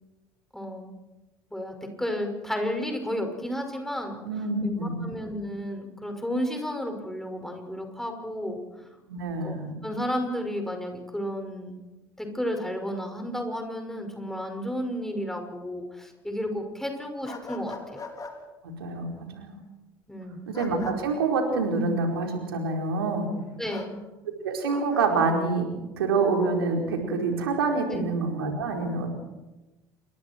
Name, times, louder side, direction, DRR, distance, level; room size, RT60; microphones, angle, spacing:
voice 1, 0.5-1.0 1.5-4.2 4.6-8.6 9.4-9.6 9.8-11.8 12.2-18.0 20.1-20.5 23.6-24.0 27.9-28.0, equal, 5° left, 4 dB, 5.9 m, -32 dB
voice 2, 4.2-5.0 9.1-9.7 18.6-19.6 20.5-23.3 24.4-25.7 26.0-29.1, right 3 dB, 75° right, 2 dB, 4.7 m, -26 dB
sound 1, 17.2-18.3 20.5-21.0 23.7-23.9 24.7-25.1, left 4 dB, 30° left, 4.0 m, -40 dB
28.5 x 23.5 x 4.7 m, 1.1 s
figure-of-eight pair, 65°, 13 cm